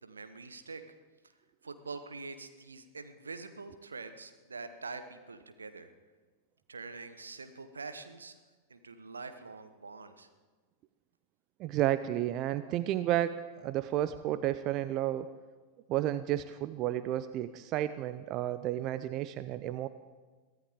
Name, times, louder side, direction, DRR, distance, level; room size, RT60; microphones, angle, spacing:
voice 1, 0.0-0.8 1.6-5.9 6.7-8.4 8.7-10.3, right 4 dB, 75° right, 9 dB, 1.2 m, -45 dB
voice 2, 11.6-15.3 15.9-19.9, right 13 dB, 40° right, 14 dB, 0.5 m, -32 dB
22.5 x 15.5 x 3.7 m, 1.4 s
figure-of-eight pair, 90°, 0 cm